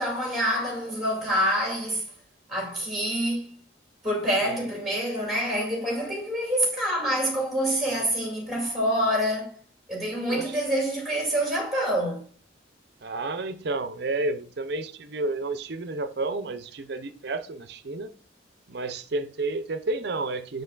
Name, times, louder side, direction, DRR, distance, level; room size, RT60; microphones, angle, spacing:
voice 1, 0.0-2.1 2.5-3.5 4.0-9.6 9.9-12.2, equal, ahead, 2.3 m, -26 dB
voice 2, 13.0-18.1 18.7-20.6, right 2 dB, 55° right, 0.6 m, -31 dB
6.7 x 6.4 x 2.4 m
head